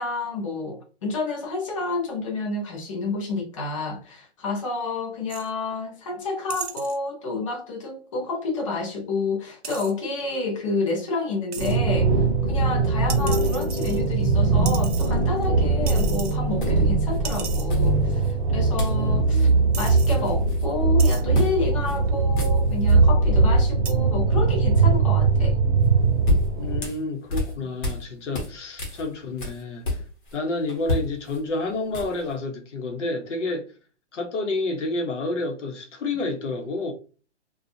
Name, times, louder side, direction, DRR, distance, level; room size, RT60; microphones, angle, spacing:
voice 1, 0.0-12.1 12.5-19.5 19.8-25.6, left 3 dB, 30° left, 0.6 m, -29 dB
sound 1, 5.3-5.5 6.5-7.0 9.6-9.9 11.5-11.8 13.1-14.3 14.7-15.5 15.9-16.4 16.7-16.8 17.2-17.7 18.6-18.7 19.3-19.4 19.7-20.1 21.0-21.2 22.1-22.4 23.9-24.0, right 7 dB, 60° right, 0.8 m, -36 dB
sound 2, 11.6-26.8, right 3 dB, 30° right, 0.8 m, -21 dB
sound 3, 15.9-16.1 16.6-17.2 17.7-18.3 18.8-19.0 19.3-19.5 19.8-20.7 21.3-21.6 21.8-22.0 22.3-23.0 25.8-28.0 28.3-30.4 30.7-32.3, left 2 dB, 45° left, 1.1 m, -30 dB
voice 2, 19.0-19.6 26.6-30.0 30.3-33.7 34.1-36.9, left 2 dB, 80° left, 0.9 m, -29 dB
2.5 x 2.3 x 2.7 m
hypercardioid pair, 165°, 35 cm